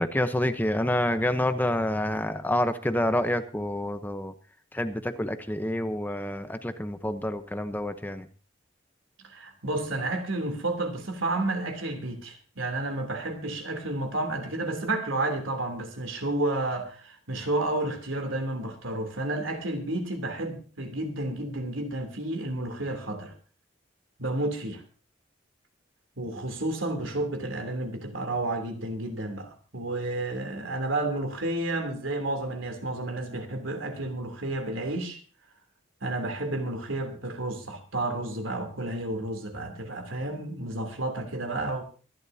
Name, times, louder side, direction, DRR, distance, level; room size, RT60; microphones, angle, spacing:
voice 1, 0.0-4.3 4.7-8.3, left 1 dB, 10° left, 0.8 m, -28 dB
voice 2, 9.2-23.3 24.2-24.8 26.2-35.2 36.0-41.8, right 2 dB, 85° right, 3.2 m, -31 dB
24.5 x 11.5 x 2.8 m
head